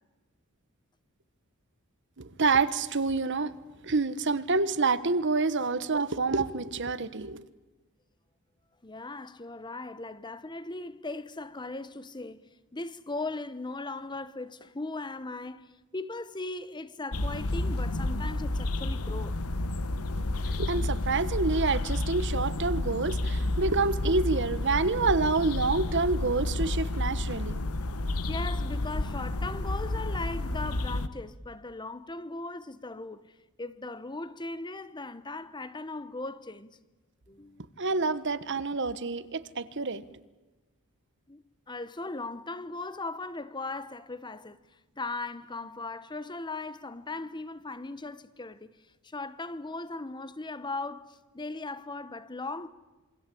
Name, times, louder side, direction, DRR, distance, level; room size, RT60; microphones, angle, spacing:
voice 1, 2.2-3.5 3.8-7.4 20.5-27.6 37.8-40.0, right 3 dB, 55° right, 1.3 m, -27 dB
voice 2, 8.8-19.4 28.3-33.3 33.6-36.8 37.3-37.7 41.3-44.6 45.0-48.7 49.0-52.7, left 2 dB, 20° left, 1.0 m, -38 dB
sound 1, 17.1-31.1, left 2 dB, 85° left, 1.4 m, -30 dB
27.5 x 24.5 x 8.6 m
head